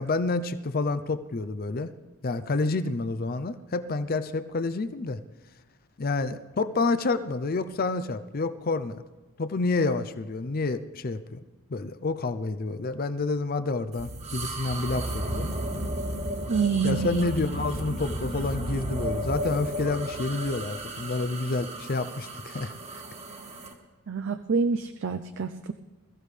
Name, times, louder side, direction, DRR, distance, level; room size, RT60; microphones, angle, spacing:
voice 1, 0.0-1.9 2.2-5.2 6.0-9.0 9.4-11.4 11.7-15.5 16.8-22.7, left 3 dB, 45° left, 12 dB, 0.5 m, -29 dB
sound 1, 13.9-23.7, right 1 dB, 30° right, 1.5 m, -34 dB
voice 2, 16.5-17.3 24.1-25.7, right 5 dB, 60° right, 8 dB, 0.5 m, -27 dB
21.5 x 14.5 x 3.3 m, 1.2 s
head